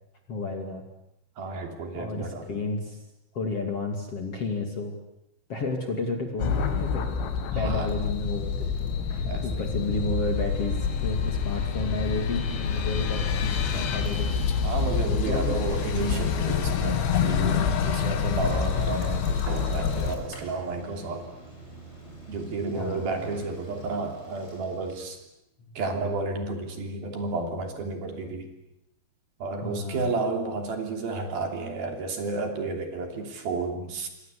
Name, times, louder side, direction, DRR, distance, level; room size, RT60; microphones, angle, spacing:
voice 1, 0.3-0.8 1.9-3.0 3.3-4.9 5.5-7.1 7.5-14.3 15.2-16.3 22.8-23.2 25.6-25.7 29.6-30.1, left 3 dB, 40° left, 4 dB, 2.9 m, -32 dB
voice 2, 1.4-2.5 7.5-7.9 9.3-9.6 14.6-21.2 22.3-25.2 25.8-28.5 29.4-34.1, right 3 dB, 60° right, 5 dB, 4.8 m, -32 dB
sound 1, 6.4-20.2, left 6 dB, 90° left, 4.5 m, -27 dB
Bicycle, 7.7-25.2, right 2 dB, 15° left, 7.0 m, -46 dB
sound 2, 19.5-24.5, right 3 dB, 30° right, 3.3 m, -46 dB
28.5 x 24.5 x 8.4 m, 0.82 s
omnidirectional pair, 5.1 m